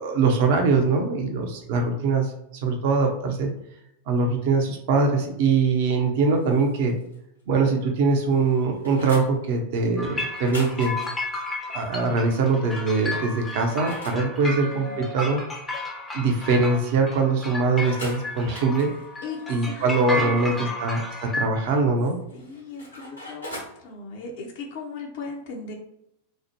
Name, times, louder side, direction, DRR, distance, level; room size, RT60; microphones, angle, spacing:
voice 1, 0.0-2.3 2.6-3.5 4.1-7.0 7.5-10.9 11.7-15.4 16.1-18.9 19.5-22.2, right 4 dB, 50° right, 3 dB, 0.6 m, -22 dB
sound 1, 6.3-7.2 7.5-7.6 8.0-9.3 10.3-12.5 13.1-14.2 17.8-20.0 22.0-23.8, left 1 dB, 85° left, 1.1 m, -42 dB
sound 2, 10.0-21.4, left 2 dB, 15° left, 0.6 m, -33 dB
voice 2, 14.4-15.1 19.2-19.4 19.7-19.9 20.1-20.7 22.3-25.7, left 4 dB, 50° left, 1 dB, 0.6 m, -38 dB
3.1 x 2.0 x 2.9 m, 0.80 s
figure-of-eight pair, 90°, 0 cm